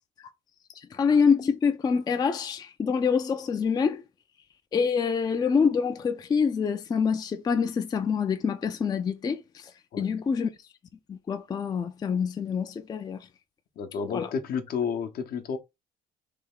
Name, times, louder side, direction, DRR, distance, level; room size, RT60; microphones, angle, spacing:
voice 1, 0.7-4.0 4.7-10.5 11.1-13.3 14.1-14.3, left 6 dB, 25° left, 0.3 m, -26 dB
voice 2, 13.8-15.6, left 6 dB, 60° left, 0.7 m, -31 dB
3.4 x 2.3 x 3.4 m
cardioid pair, 110°, 17 cm